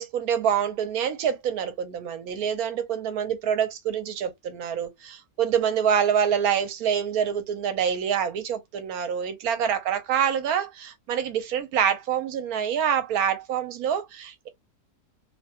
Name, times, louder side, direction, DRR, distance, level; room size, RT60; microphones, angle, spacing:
voice 1, 0.0-14.5, right 8 dB, 75° right, 1.0 m, -26 dB
2.8 x 2.1 x 2.7 m
omnidirectional pair, 1.7 m